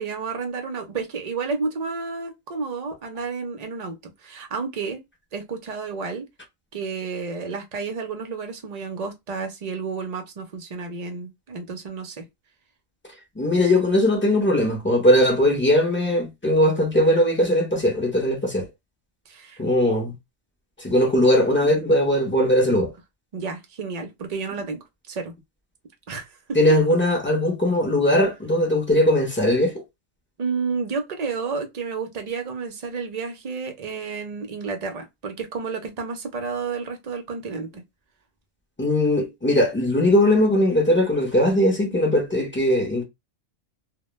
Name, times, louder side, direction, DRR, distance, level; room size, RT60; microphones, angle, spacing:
voice 1, 0.0-5.0 5.3-6.3 6.7-12.3 19.3-19.6 23.3-25.3 26.1-26.3 30.4-37.8, right 5 dB, 55° right, 0.4 m, -31 dB
voice 2, 13.4-18.7 19.6-20.1 20.8-22.9 26.5-29.8 38.8-43.0, left 1 dB, 15° left, 0.4 m, -19 dB
2.1 x 2.1 x 3.0 m
omnidirectional pair, 1.3 m